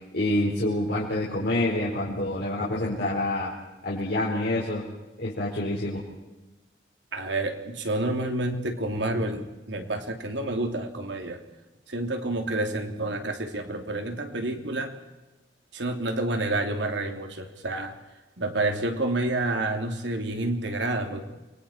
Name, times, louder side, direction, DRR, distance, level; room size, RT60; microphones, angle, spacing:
voice 1, 0.1-3.5 3.8-4.8 5.2-6.0, left 1 dB, 65° left, -6 dB, 4.7 m, -27 dB
voice 2, 7.1-11.4 11.9-14.9 15.7-17.9 18.4-21.2, right 2 dB, 80° right, 4 dB, 3.1 m, -29 dB
29.5 x 23.5 x 4.5 m, 1.1 s
head